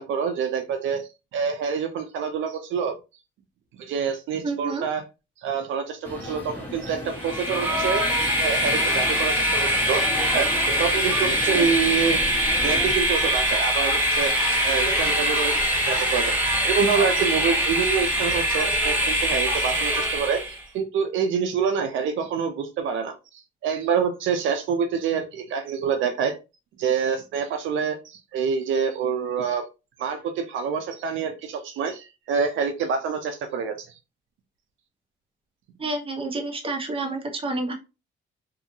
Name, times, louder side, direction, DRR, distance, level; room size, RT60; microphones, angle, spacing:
voice 1, 0.0-3.0 3.8-5.1 5.4-14.3 14.6-23.1 23.6-26.4 26.8-29.7 30.0-33.7, right 6 dB, 75° right, 5 dB, 0.5 m, -27 dB
voice 2, 4.4-4.8 11.5-11.7 35.8-37.7, right 2 dB, 25° right, 2 dB, 1.0 m, -29 dB
sound 1, 6.0-12.9, left 1 dB, 10° left, 1.4 m, -36 dB
Train, 7.1-20.6, equal, 10° right, 1.4 m, -23 dB
2.7 x 2.5 x 2.7 m, 0.28 s
cardioid pair, 90°, 20 cm